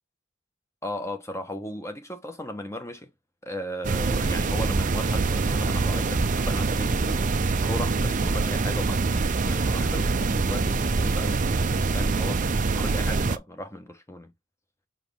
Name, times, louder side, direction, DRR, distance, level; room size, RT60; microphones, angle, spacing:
voice 1, 0.8-3.1 3.4-7.3 7.6-12.4 12.7-14.3, left 1 dB, 15° left, 1.2 m, -36 dB
sound 1, 3.8-13.4, right 3 dB, 40° right, 0.6 m, -24 dB
6.1 x 4.7 x 3.5 m
head